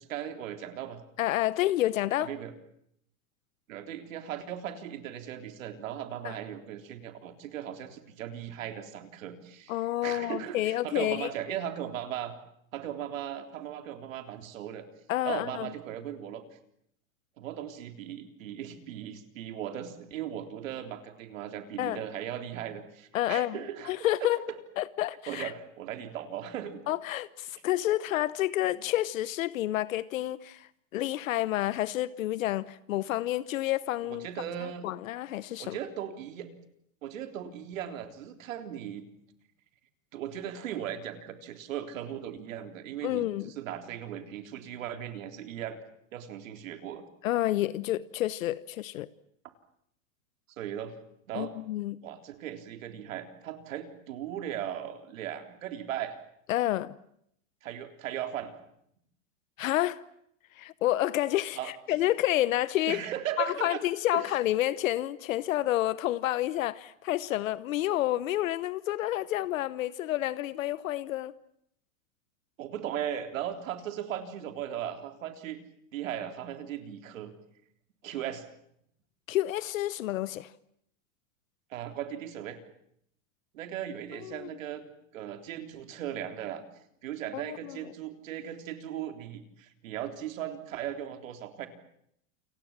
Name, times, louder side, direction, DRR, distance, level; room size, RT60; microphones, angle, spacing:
voice 1, 0.0-1.0 2.2-2.5 3.7-12.3 12.7-14.9 15.2-16.4 17.4-24.6 25.3-26.8 28.7-28.8 34.1-34.9 35.6-36.5 37.0-39.0 40.1-45.8 46.1-47.0 50.6-50.9 51.3-51.6 52.0-56.2 57.6-58.5 61.6-62.0 62.9-63.8 64.1-64.3 72.6-75.6 75.9-77.3 78.0-78.4 81.7-82.6 83.5-84.8 85.1-86.6 87.0-91.7, right 10 dB, 75° right, 3.7 m, -38 dB
voice 2, 1.2-2.3 6.2-6.4 9.7-11.3 15.1-15.7 21.8-22.0 23.1-23.6 23.9-24.4 24.8-25.5 26.9-34.3 34.8-35.8 43.0-43.5 47.2-49.1 51.3-52.0 56.5-56.9 59.6-60.0 60.6-63.0 63.4-71.3 79.3-80.5 84.2-84.5 87.3-87.8, left 14 dB, 80° left, 1.0 m, -29 dB
29.0 x 24.5 x 7.4 m
supercardioid pair, 170°, 40 cm